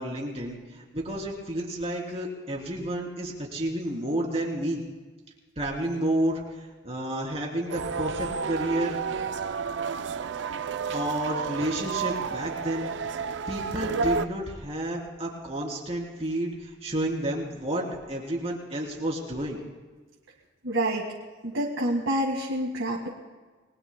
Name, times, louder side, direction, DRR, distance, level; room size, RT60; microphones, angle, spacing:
voice 1, 0.0-4.8 5.6-9.0 10.9-12.9 13.5-19.6, right 1 dB, 30° right, -1 dB, 3.2 m, -30 dB
sound 1, 7.7-14.3, right 5 dB, 65° right, 0.5 m, -31 dB
voice 2, 20.6-21.1 21.4-23.1, right 1 dB, 85° right, -2 dB, 1.8 m, -27 dB
29.0 x 21.0 x 2.2 m, 1.3 s
head